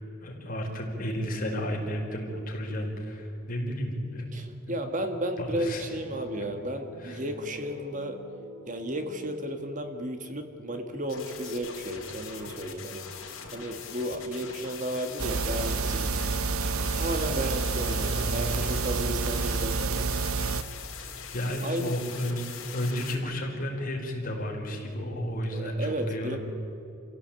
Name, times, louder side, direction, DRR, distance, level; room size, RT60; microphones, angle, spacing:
voice 1, 0.2-4.3 4.6-4.7 5.4-5.8 7.0-7.2 21.3-22.4 22.7-26.4, equal, 40° left, -1 dB, 5.0 m, -32 dB
voice 2, 4.3-8.2 8.7-16.2 16.9-20.1 21.6-21.9 25.5-26.4, right 1 dB, 35° right, 6 dB, 1.6 m, -33 dB
sound 1, 5.6-10.1, equal, 20° left, 2.8 m, -48 dB
sound 2, 11.0-23.2, left 6 dB, 60° left, 4.5 m, -42 dB
sound 3, 15.2-20.6, right 4 dB, 75° right, 1.0 m, -28 dB
28.5 x 16.5 x 9.0 m, 2.8 s
head